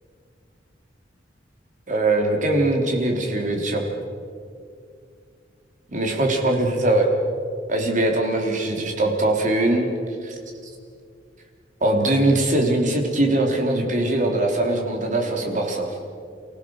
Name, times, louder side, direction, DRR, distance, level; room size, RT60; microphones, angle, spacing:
voice 1, 1.9-3.8 5.9-7.1 7.7-9.9 10.2-10.3 11.8-15.9, right 2 dB, 45° right, 2 dB, 3.3 m, -21 dB
29.5 x 16.5 x 6.3 m, 2.3 s
head